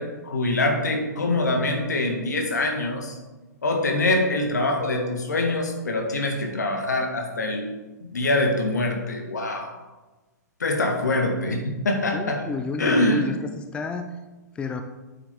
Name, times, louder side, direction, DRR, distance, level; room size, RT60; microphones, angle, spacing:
voice 1, 0.0-3.2 3.6-7.7 8.0-9.8 10.6-12.4 12.8-13.3, left 2 dB, 70° left, 3 dB, 1.7 m, -24 dB
voice 2, 12.1-14.1 14.6-14.8, left 4 dB, 10° left, 7 dB, 0.4 m, -30 dB
8.5 x 7.4 x 3.7 m, 1.2 s
figure-of-eight pair, 110°, 10 cm